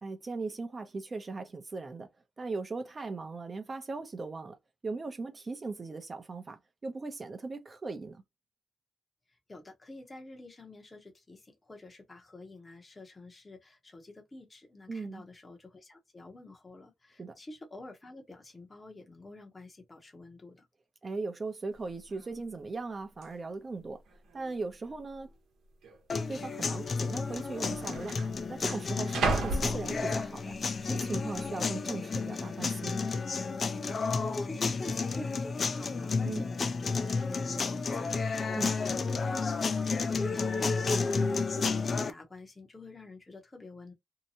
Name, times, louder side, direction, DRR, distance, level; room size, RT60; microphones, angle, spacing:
voice 1, 0.0-2.1 2.4-4.6 4.8-8.2 14.9-15.2 17.2-17.4 21.0-24.0 24.3-25.4 26.3-28.2 28.5-30.6 30.9-33.0 36.2-36.5 38.5-38.8, right 3 dB, 35° right, 0.6 m, -38 dB
voice 2, 9.3-20.7 34.4-43.9, left 2 dB, 25° left, 0.8 m, -48 dB
sound 1, 21.8-21.9 22.1-22.5 23.2-23.3 24.1-24.6 24.8-25.0 25.8-26.0 27.0-27.1 27.3-30.5 31.0-31.4, right 3 dB, 85° right, 0.9 m, -35 dB
sound 2, 26.1-42.1, left 4 dB, 45° left, 0.4 m, -31 dB
2.7 x 2.2 x 2.7 m
cardioid pair, 80°, 0 cm